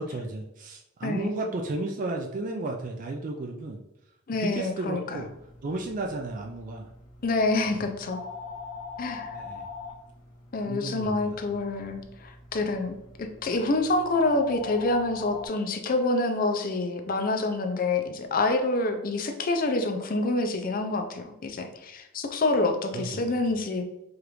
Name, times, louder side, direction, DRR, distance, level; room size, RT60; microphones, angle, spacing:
voice 1, 0.0-3.8 4.4-5.3 5.6-6.9 7.7-7.9 9.3-9.7 10.6-11.4 22.9-23.3, right 2 dB, 40° right, 2 dB, 0.3 m, -33 dB
voice 2, 1.0-1.4 4.3-5.2 7.2-8.2 9.0-9.4 10.5-23.8, left 2 dB, 40° left, 6 dB, 0.5 m, -27 dB
sound 1, 5.1-15.5, left 4 dB, 85° left, 1.0 m, -43 dB
4.9 x 2.5 x 3.0 m, 0.88 s
head